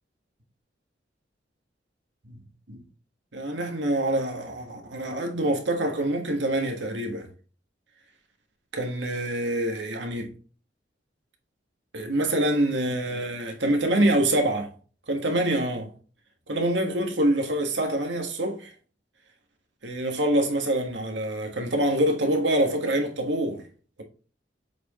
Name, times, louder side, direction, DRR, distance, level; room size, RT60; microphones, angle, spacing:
voice 1, 3.3-7.3 8.7-10.3 11.9-14.7 15.1-15.9 16.5-18.7 19.8-23.7, right 1 dB, 80° right, 1.5 m, -25 dB
7.9 x 4.4 x 3.0 m
head